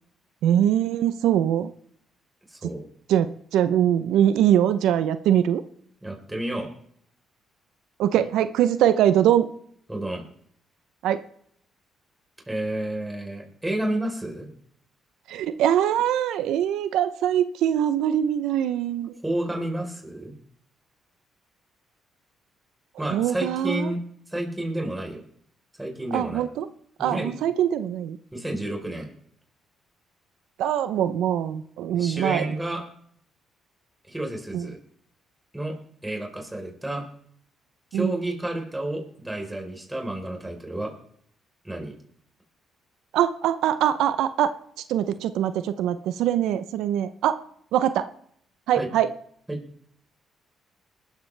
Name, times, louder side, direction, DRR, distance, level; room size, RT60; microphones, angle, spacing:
voice 1, 0.4-1.7 3.1-5.6 8.0-9.5 11.0-11.2 15.3-19.2 23.1-23.9 26.1-26.7 27.0-28.2 30.6-32.5 34.5-34.7 37.9-38.2 43.1-44.5 44.9-47.4 47.7-48.1 48.7-49.1, right 10 dB, 85° right, 12 dB, 0.6 m, -23 dB
voice 2, 2.5-2.8 6.0-6.7 9.9-10.2 12.5-14.5 19.2-20.3 23.0-24.0 24.3-25.2 25.8-26.5 27.0-27.3 28.3-29.1 31.9-32.8 34.0-34.8 35.5-35.8 36.0-37.1 37.9-40.9 41.6-42.0 48.8-48.9 49.5-49.6, right 1 dB, 10° right, 1 dB, 3.9 m, -30 dB
20.0 x 12.5 x 3.3 m, 0.65 s
cardioid pair, 90°, 0 cm